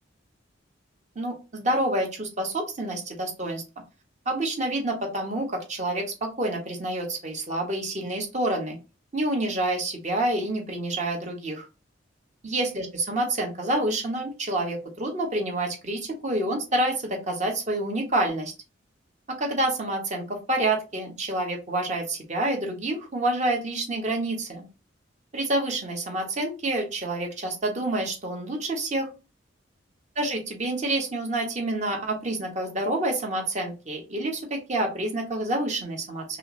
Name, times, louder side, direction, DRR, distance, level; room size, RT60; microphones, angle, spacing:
voice 1, 1.2-3.6 4.3-8.8 9.1-11.7 12.4-18.5 19.4-24.6 25.3-29.1 30.2-36.2, right 1 dB, 35° right, 2 dB, 1.0 m, -28 dB
5.5 x 2.0 x 2.6 m, 0.30 s
head